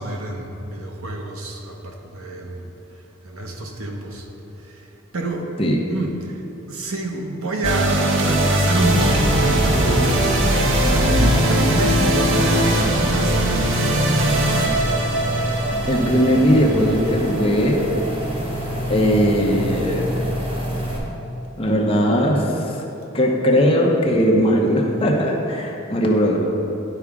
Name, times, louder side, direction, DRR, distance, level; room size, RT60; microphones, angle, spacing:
voice 1, 0.0-2.7 3.2-4.2 5.1-5.5 5.9-6.3 6.7-13.5, right 2 dB, 85° right, 1 dB, 0.9 m, -27 dB
sound 1, 7.6-18.0, right 1 dB, 65° right, 0.8 m, -21 dB
sound 2, 8.8-21.0, equal, 25° right, 1.0 m, -25 dB
voice 2, 15.9-17.8 18.9-20.1 21.6-22.8 23.1-26.5, equal, 25° left, -1 dB, 0.7 m, -19 dB
11.0 x 4.8 x 3.6 m, 3.0 s
head